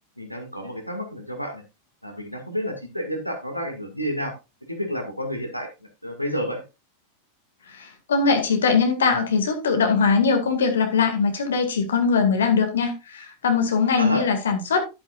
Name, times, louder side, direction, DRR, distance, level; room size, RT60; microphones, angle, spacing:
voice 1, 0.2-1.6 2.0-4.3 4.7-5.7 6.0-6.6 14.0-14.2, equal, 90° left, 4 dB, 2.0 m, -30 dB
voice 2, 7.7-14.8, left 5 dB, 65° left, 5 dB, 2.0 m, -21 dB
11.0 x 8.8 x 2.4 m, 0.26 s
figure-of-eight pair, 90°, 0 cm